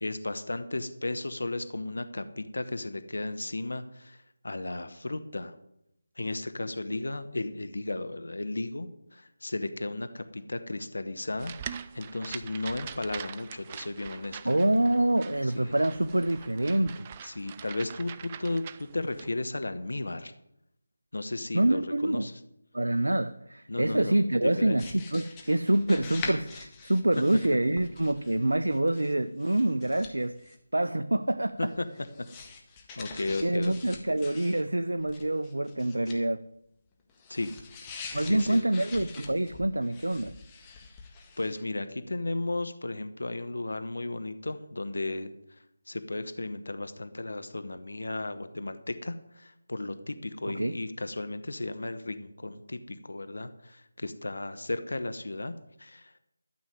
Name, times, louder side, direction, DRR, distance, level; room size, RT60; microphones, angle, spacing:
voice 1, 0.0-5.5 6.2-11.5 11.9-14.5 15.5-15.7 17.2-20.3 21.1-22.3 23.7-24.8 31.6-31.9 33.0-34.0 37.3-37.6 37.8-38.0 38.3-38.6 41.4-45.4 45.9-56.1, left 2 dB, 75° left, 1.1 m, -34 dB
sound 1, 11.4-19.3, right 8 dB, 25° right, 0.5 m, -44 dB
voice 2, 14.4-17.1 21.5-22.3 22.7-31.7 33.4-36.4 38.1-40.4 50.5-50.8, right 1 dB, 85° right, 0.6 m, -26 dB
sound 2, 24.8-29.1 29.4-30.6 31.7-34.6 34.9-36.2 37.1-41.6, left 4 dB, 15° left, 1.5 m, -45 dB
12.5 x 6.3 x 9.4 m
figure-of-eight pair, 160°, 0 cm